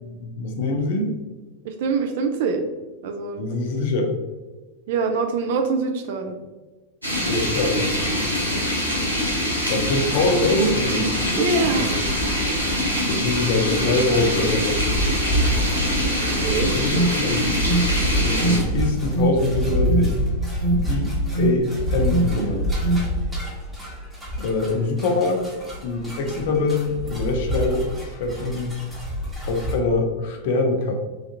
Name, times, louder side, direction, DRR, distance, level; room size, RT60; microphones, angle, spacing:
voice 1, 0.0-1.1 3.4-4.1 7.2-7.8 9.7-11.2 11.6-11.9 13.1-14.8 16.7-17.5 18.1-20.1 20.9-22.7 24.4-25.4 25.8-28.7 29.4-30.9, left 2 dB, 50° left, 3 dB, 0.5 m, -24 dB
voice 2, 1.6-2.6 3.0-3.4 4.9-6.4 11.4-12.0 16.1-16.7, right 4 dB, 55° right, 5 dB, 0.3 m, -24 dB
sound 1, 7.0-18.6, left 1 dB, 85° right, 0.7 m, -24 dB
sound 2, 11.6-29.8, equal, 10° right, 1.0 m, -28 dB
Alarm, 16.3-23.0, right 2 dB, 35° right, 1.0 m, -26 dB
3.2 x 2.4 x 2.6 m, 1.2 s
figure-of-eight pair, 90°, 0 cm